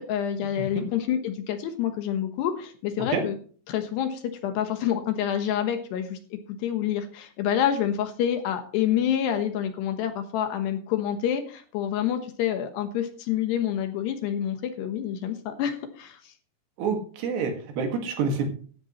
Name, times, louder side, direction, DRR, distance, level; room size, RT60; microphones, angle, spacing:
voice 1, 0.0-3.4 3.7-6.2 6.6-16.3, left 9 dB, 70° left, 7 dB, 3.0 m, -27 dB
voice 2, 16.8-18.5, right 5 dB, 65° right, 4 dB, 3.8 m, -27 dB
16.0 x 11.5 x 3.1 m, 0.43 s
omnidirectional pair, 5.5 m